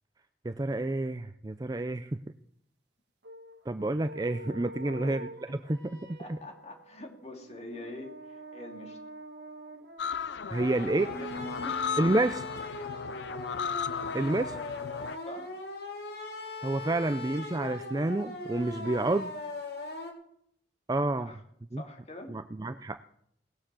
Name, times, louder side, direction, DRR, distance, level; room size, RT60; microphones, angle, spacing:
voice 1, 0.4-2.1 3.7-6.4 10.5-11.1 12.0-12.4 14.1-14.6 16.6-19.3 20.9-21.3 21.7-21.8 22.3-23.0, right 2 dB, 20° right, 10 dB, 0.4 m, -29 dB
sound 1, 3.2-12.6, right 1 dB, 70° right, 1.4 m, -46 dB
voice 2, 4.8-5.1 5.5-5.6 6.2-9.0 10.6-11.8 15.2-15.5 21.2-21.4 21.8-22.4, left 1 dB, 35° left, 3 dB, 2.7 m, -45 dB
sound 2, 10.0-15.2, left 7 dB, 80° left, 0.5 m, -36 dB
sound 3, 10.5-20.1, left 2 dB, 65° left, 3.4 m, -39 dB
19.0 x 7.2 x 7.5 m, 0.69 s
head